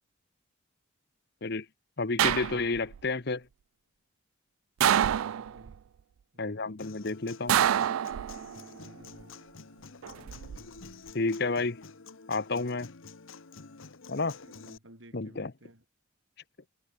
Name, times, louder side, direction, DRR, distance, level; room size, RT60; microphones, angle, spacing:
voice 1, 2.0-3.4 6.4-7.6 11.1-11.8 12.3-12.9 14.1-14.4 15.1-15.5, left 3 dB, 50° left, 1.0 m, -30 dB
sound 1, 2.2-3.0 4.8-5.7 7.5-8.6 10.0-10.6, right 10 dB, 85° right, 0.3 m, -26 dB
voice 2, 5.2-5.8 6.3-6.8 8.8-9.4 14.4-15.8, right 1 dB, 70° right, 6.3 m, -55 dB
Human voice / Acoustic guitar, 6.8-14.8, left 4 dB, 75° left, 1.1 m, -49 dB
head